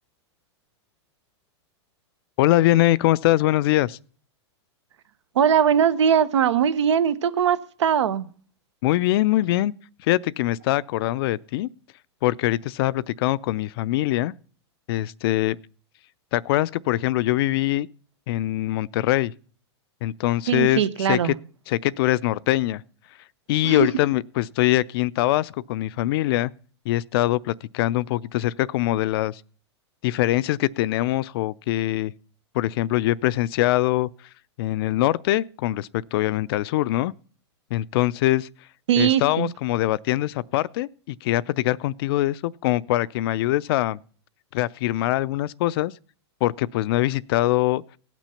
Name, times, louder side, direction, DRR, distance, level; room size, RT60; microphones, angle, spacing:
voice 1, 2.4-4.0 8.8-9.7 10.1-11.7 12.2-14.3 14.9-15.6 16.3-17.9 18.3-19.3 20.0-21.3 21.7-22.8 23.5-26.5 26.9-29.4 30.0-32.1 32.5-34.1 34.6-37.1 37.7-38.5 39.0-44.0 44.5-45.9 46.4-48.0, left 16 dB, 55° left, 0.5 m, -23 dB
voice 2, 5.3-8.3 20.5-21.4 23.6-23.9 38.9-39.5, right 8 dB, 85° right, 0.9 m, -20 dB
17.5 x 6.1 x 5.6 m
hypercardioid pair, 130°, 15 cm